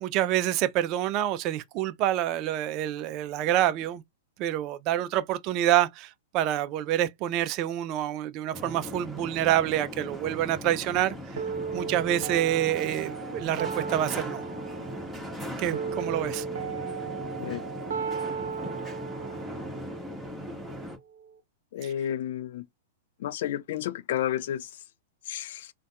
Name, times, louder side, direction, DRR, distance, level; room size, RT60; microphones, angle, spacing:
voice 1, 0.0-4.0 4.4-11.2 11.7-14.4 15.6-16.4 21.8-21.9, right 12 dB, 40° right, 0.4 m, -27 dB
sound 1, 8.5-21.0, equal, 5° right, 1.5 m, -39 dB
sound 2, 11.4-21.4, right 6 dB, 75° right, 0.7 m, -36 dB
voice 2, 21.7-22.7 23.2-24.7 25.3-25.7, left 11 dB, 60° left, 0.3 m, -31 dB
3.9 x 2.2 x 2.3 m
hypercardioid pair, 110°, 0 cm